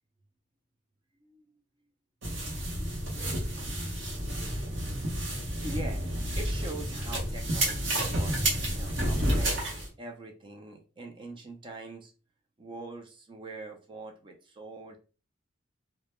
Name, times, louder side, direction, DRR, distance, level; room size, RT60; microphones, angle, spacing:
voice 1, 1.2-1.6 5.6-12.1 12.6-15.0, right 2 dB, 25° right, 3 dB, 0.3 m, -43 dB
sound 1, 2.2-9.9, right 1 dB, 60° right, 0.8 m, -30 dB
2.1 x 2.0 x 2.9 m, 0.35 s
head